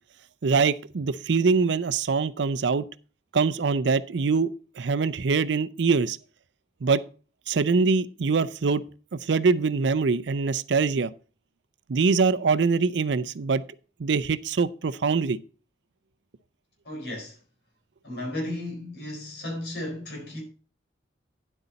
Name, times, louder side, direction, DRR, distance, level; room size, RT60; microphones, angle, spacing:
voice 1, 0.4-2.8 3.3-6.2 6.8-7.0 7.5-8.8 9.2-11.1 11.9-13.6 14.0-15.4, right 4 dB, 75° right, 0.5 m, -23 dB
voice 2, 16.8-17.4 18.0-20.4, left 1 dB, 65° left, 4.1 m, -34 dB
10.0 x 8.0 x 4.1 m
head